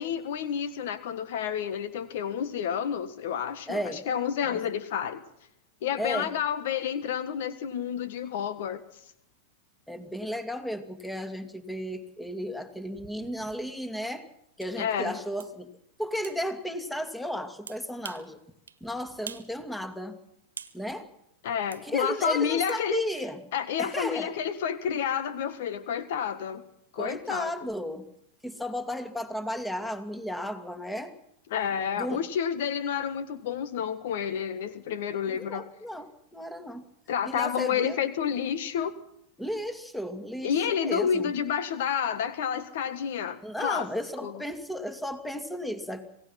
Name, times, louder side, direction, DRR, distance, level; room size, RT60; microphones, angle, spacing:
voice 1, 0.0-5.2 5.8-8.8 14.8-15.2 21.4-23.0 23.5-26.6 26.9-27.5 31.5-35.7 37.1-39.0 40.4-43.9 44.2-44.4, left 8 dB, 65° left, 13 dB, 1.6 m, -30 dB
voice 2, 3.7-4.0 4.4-4.6 6.0-6.3 9.9-14.3 14.6-15.7 16.0-18.4 18.8-20.2 20.7-21.1 21.8-23.4 23.8-24.3 27.0-28.1 28.4-31.1 32.0-32.2 35.3-36.9 37.3-38.0 39.4-41.3 43.4-46.1, equal, 5° left, 9 dB, 2.4 m, -34 dB
sound 1, 14.6-14.7 15.4-15.5 16.2-16.4 17.7-18.3 18.7-18.8 19.3-19.5 19.9-20.8 21.7-21.9 22.7-22.8, right 6 dB, 85° right, 1.4 m, -43 dB
27.0 x 17.5 x 5.9 m, 0.75 s
hypercardioid pair, 100°, 0 cm